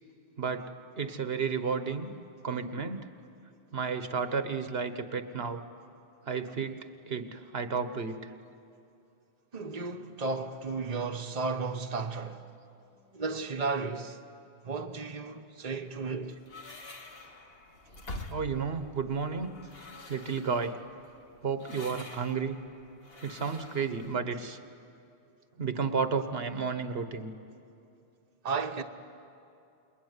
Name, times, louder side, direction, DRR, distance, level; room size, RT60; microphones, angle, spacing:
voice 1, 0.4-0.7 0.9-2.1 2.4-3.1 3.7-5.6 6.2-8.3 18.3-19.5 20.1-20.8 21.4-22.6 23.2-24.6 25.6-27.3, right 5 dB, 75° right, 1.4 m, -32 dB
voice 2, 9.5-12.5 13.1-14.2 14.6-16.4 28.4-28.8, right 4 dB, 40° right, 1.2 m, -34 dB
sound 1, 15.9-24.1, left 2 dB, 70° left, 2.1 m, -47 dB
28.5 x 22.0 x 9.6 m
omnidirectional pair, 1.0 m